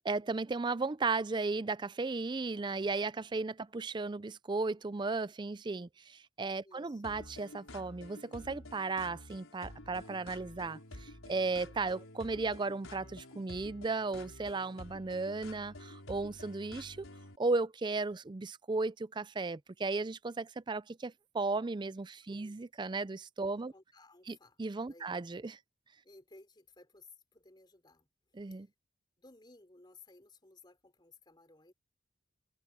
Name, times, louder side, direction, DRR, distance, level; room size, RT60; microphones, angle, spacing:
voice 1, 0.0-17.0 17.4-23.7 24.3-25.6 28.3-28.7, right 3 dB, 20° right, 0.4 m, -35 dB
voice 2, 6.6-7.0 22.3-22.5 23.7-24.6 24.9-25.1 26.0-28.1 28.5-28.7 29.2-31.7, left 3 dB, 20° left, 3.6 m, -59 dB
sound 1, 7.0-17.4, left 1 dB, 85° left, 4.9 m, -50 dB
head